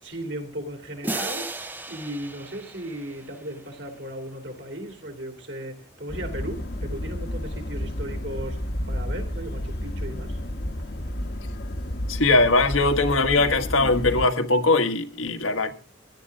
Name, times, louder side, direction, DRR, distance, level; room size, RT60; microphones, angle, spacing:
voice 1, 0.0-10.4, right 1 dB, 65° right, 3.1 m, -36 dB
sound 1, 1.0-3.9, right 2 dB, 10° right, 0.6 m, -35 dB
sound 2, 6.1-14.3, left 1 dB, 55° left, 1.1 m, -31 dB
voice 2, 12.1-15.7, left 3 dB, 85° left, 1.5 m, -21 dB
17.0 x 12.0 x 3.6 m
head